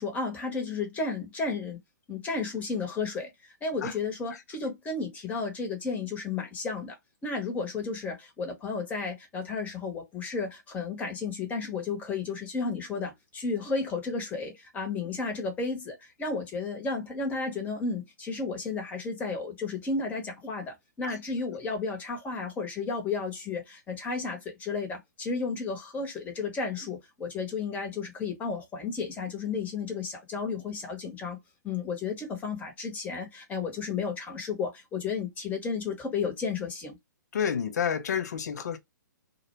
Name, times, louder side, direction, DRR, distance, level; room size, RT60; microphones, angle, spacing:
voice 1, 0.0-1.8 2.1-7.0 7.2-31.4 31.6-37.0, left 4 dB, 15° left, 0.8 m, -33 dB
voice 2, 37.3-38.8, left 7 dB, 60° left, 0.6 m, -29 dB
2.2 x 2.1 x 3.0 m
figure-of-eight pair, 125°, 10 cm